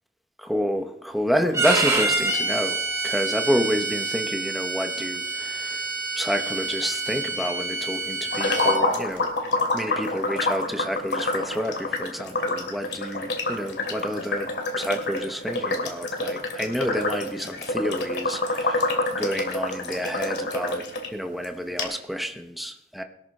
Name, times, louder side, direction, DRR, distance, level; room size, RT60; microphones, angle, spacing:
voice 1, 0.4-5.9 6.2-9.3 9.7-18.8 19.1-23.0, equal, ahead, 5 dB, 0.8 m, -29 dB
Bowed string instrument, 1.5-8.8, right 3 dB, 15° right, 2.8 m, -27 dB
sound 1, 8.3-21.1 21.4-21.5 21.8-21.9, left 2 dB, 60° left, 2.5 m, -27 dB
21.5 x 13.0 x 3.2 m, 0.80 s
head